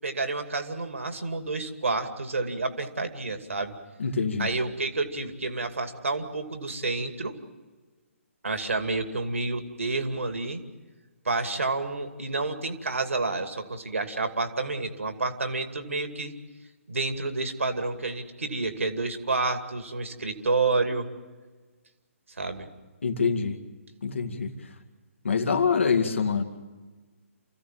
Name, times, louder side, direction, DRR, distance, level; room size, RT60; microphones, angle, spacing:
voice 1, 0.0-3.7 4.4-7.4 8.4-10.6 11.2-16.3 16.9-21.1 22.4-22.7, right 3 dB, 65° right, 7 dB, 2.5 m, -29 dB
voice 2, 4.0-4.5 23.0-23.6 24.0-24.5 25.2-26.4, left 5 dB, 60° left, 6 dB, 2.2 m, -25 dB
29.0 x 16.0 x 7.6 m, 1.3 s
figure-of-eight pair, 135°, 8 cm